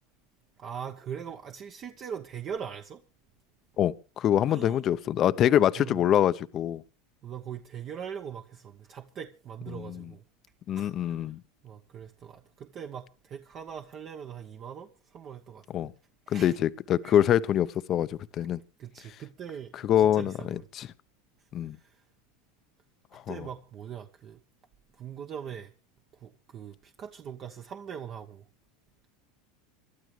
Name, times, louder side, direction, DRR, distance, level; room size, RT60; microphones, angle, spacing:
voice 1, 0.6-3.0 4.5-4.8 5.8-6.0 7.2-10.2 10.7-11.3 11.6-15.9 16.3-16.6 17.0-17.2 18.8-20.9 21.7-22.0 23.3-24.4 25.0-25.7 26.2-28.4, right 8 dB, 40° right, 1.1 m, -41 dB
voice 2, 3.8-6.8 9.7-10.1 10.7-11.4 15.7-15.9 16.3-18.6 19.7-20.9 21.5-21.8 23.1-23.5, left 11 dB, 40° left, 0.7 m, -25 dB
26.5 x 12.0 x 3.3 m
hypercardioid pair, 95°, 0 cm